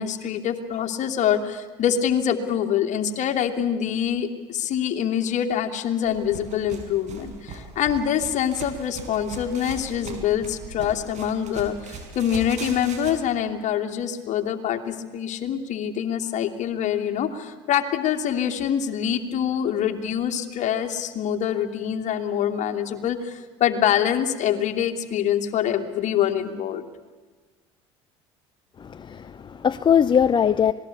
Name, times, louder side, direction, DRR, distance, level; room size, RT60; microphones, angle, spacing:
voice 1, 0.0-26.9, left 9 dB, 55° left, 4 dB, 2.7 m, -25 dB
sound 1, 6.1-13.2, right 4 dB, 50° right, 5.9 m, -39 dB
voice 2, 28.8-30.7, left 8 dB, 30° left, 12 dB, 0.8 m, -21 dB
26.5 x 19.5 x 8.4 m, 1.3 s
hypercardioid pair, 75°, 15 cm